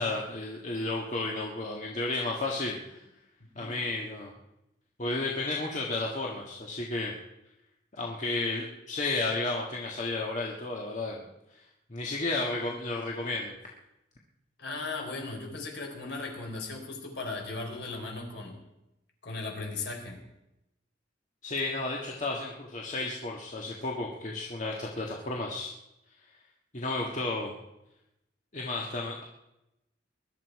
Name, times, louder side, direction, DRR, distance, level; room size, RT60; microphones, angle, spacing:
voice 1, 0.0-3.0 3.5-4.3 5.0-7.1 7.9-11.2 11.5-11.6 11.9-13.6 21.4-25.7 26.7-27.6 28.5-29.2, left 2 dB, 40° left, -2 dB, 1.6 m, -32 dB
voice 2, 14.6-18.6 19.2-20.2, left 3 dB, 65° left, 1 dB, 4.1 m, -37 dB
21.0 x 11.5 x 4.7 m, 0.90 s
head